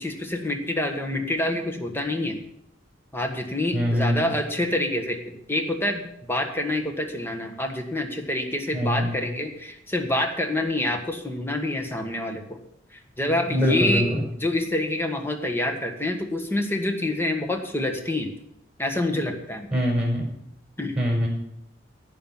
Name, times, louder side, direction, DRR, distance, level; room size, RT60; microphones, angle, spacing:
voice 1, 0.0-2.4 3.1-12.6 13.2-14.1 14.4-18.3 18.8-19.7 20.8-20.9, left 1 dB, 10° left, 4 dB, 1.5 m, -27 dB
voice 2, 3.7-4.3 8.7-9.1 13.5-14.1 19.7-20.3 21.0-21.3, equal, 5° right, -1 dB, 5.2 m, -23 dB
17.0 x 5.7 x 7.3 m, 0.76 s
head